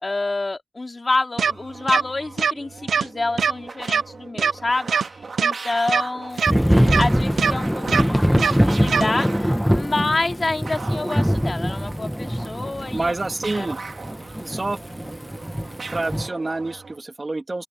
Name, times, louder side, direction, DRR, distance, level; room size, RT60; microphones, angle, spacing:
voice 1, 0.0-6.4 7.0-13.1 13.5-13.7, left 2 dB, 35° left, 2.8 m, -27 dB
sound 1, 1.3-17.0, right 4 dB, 55° right, 4.2 m, -39 dB
sound 2, 1.4-1.5 1.9-2.0 2.4-2.5 2.9-3.0 3.4-3.5 3.9-4.0 4.4-4.5 4.9-5.0 5.4-5.5 5.9-6.0 6.4-6.5 6.9-7.0 7.4-7.5 7.9-8.0 8.4-8.5 8.9-9.0, right 6 dB, 85° right, 0.8 m, -20 dB
Thunder / Rain, 6.5-16.3, equal, ahead, 1.3 m, -23 dB
voice 2, 6.5-7.0 12.9-13.8 14.4-15.1 15.9-17.7, right 2 dB, 30° right, 2.7 m, -28 dB
open air
wide cardioid pair, 80°, 0 cm